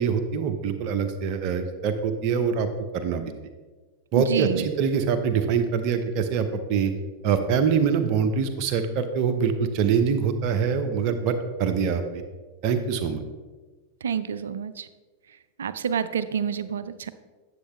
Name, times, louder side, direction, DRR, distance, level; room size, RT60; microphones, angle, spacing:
voice 1, 0.0-2.7 2.9-3.2 4.1-6.9 7.2-12.2 12.6-13.2, right 6 dB, 40° right, 8 dB, 0.8 m, -24 dB
voice 2, 4.2-4.7 14.0-14.9 15.6-17.1, right 7 dB, 65° right, 14 dB, 0.4 m, -28 dB
9.7 x 7.4 x 3.2 m, 1.3 s
figure-of-eight pair, 90°, 0 cm